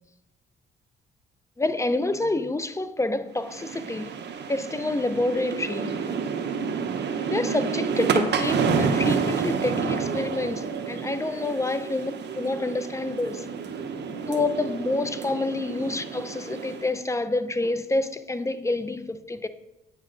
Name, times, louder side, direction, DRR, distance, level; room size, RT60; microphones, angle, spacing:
voice 1, 1.6-4.1 4.5-5.9 7.2-13.5 14.3-19.5, left 2 dB, 15° left, 0.6 m, -28 dB
sound 1, 3.4-16.9, right 5 dB, 60° right, 1.0 m, -29 dB
9.5 x 7.3 x 3.9 m
cardioid pair, 90°, 20 cm